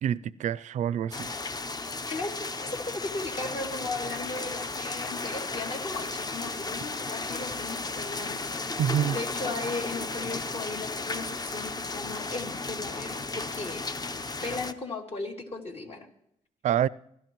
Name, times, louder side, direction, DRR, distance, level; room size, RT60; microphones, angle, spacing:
voice 1, 0.0-1.3 8.8-9.2 16.6-16.9, right 10 dB, 65° right, 0.4 m, -27 dB
sound 1, 1.1-14.7, left 3 dB, 30° left, 0.8 m, -34 dB
voice 2, 2.1-8.5 9.1-13.8 14.4-16.1, left 3 dB, 50° left, 2.8 m, -36 dB
26.5 x 12.0 x 3.1 m
cardioid pair, 70°, 13 cm